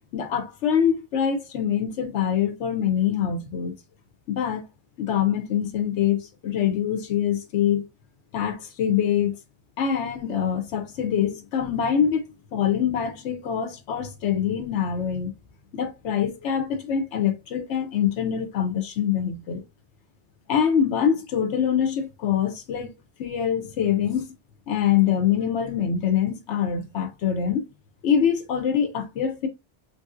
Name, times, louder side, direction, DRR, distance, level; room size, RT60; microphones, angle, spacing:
voice 1, 0.1-3.7 4.3-4.6 5.0-7.9 8.3-9.4 9.8-15.3 15.7-19.6 20.5-22.9 23.2-24.3 24.7-27.6 28.0-29.5, left 8 dB, 90° left, 0.9 m, -24 dB
3.3 x 2.6 x 2.4 m
omnidirectional pair, 1.2 m